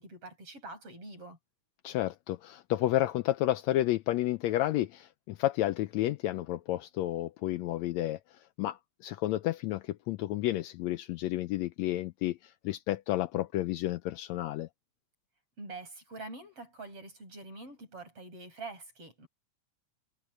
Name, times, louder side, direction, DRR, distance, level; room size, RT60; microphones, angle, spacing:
voice 1, 0.0-1.4 15.6-19.3, right 2 dB, 50° right, 9.0 m, -45 dB
voice 2, 1.8-8.2 8.6-14.7, left 15 dB, 80° left, 1.7 m, -31 dB
omnidirectional pair, 3.4 m